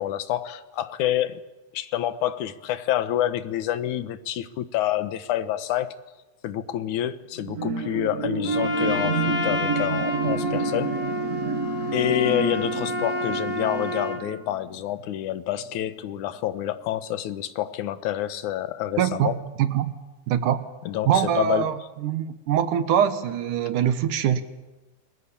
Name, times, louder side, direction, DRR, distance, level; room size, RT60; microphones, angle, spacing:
voice 1, 0.0-1.4 1.7-5.9 6.4-10.9 11.9-19.4 20.9-21.7, left 12 dB, 75° left, 11 dB, 2.5 m, -27 dB
sound 1, 7.4-15.2 15.6-15.7, right 5 dB, 60° right, 0.9 m, -29 dB
Trumpet, 8.4-14.2, left 2 dB, 15° left, 3.4 m, -29 dB
voice 2, 19.0-19.9 20.3-20.7 21.1-21.8 22.0-24.4, right 9 dB, 80° right, 11 dB, 2.8 m, -23 dB
29.0 x 21.5 x 8.5 m, 1.1 s
omnidirectional pair, 3.6 m